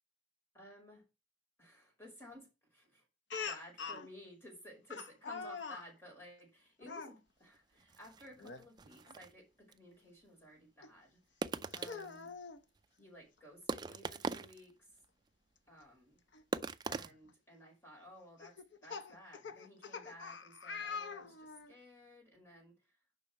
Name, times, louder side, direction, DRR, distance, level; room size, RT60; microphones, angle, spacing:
voice 1, 0.5-1.1 1.6-3.0 3.4-11.2 11.7-12.3 13.0-14.9 15.7-16.2 16.8-18.6 18.8-22.9, equal, 15° left, -1 dB, 5.3 m, -56 dB
Speech, 3.3-4.1 4.9-5.9 6.8-7.1 8.4-8.6 9.1-9.2 10.8-10.9 11.7-12.6 13.9-14.0 14.3-14.4 16.3-16.4 17.1-17.3 18.4-21.7, left 5 dB, 85° left, 0.9 m, -44 dB
sound 1, 7.5-7.6 7.8-9.3 9.7-9.8 11.4-12.3 12.8-12.9 13.7-14.7 15.0-15.1 16.5-17.1, right 3 dB, 25° right, 0.4 m, -40 dB
7.4 x 5.5 x 6.5 m, 0.27 s
head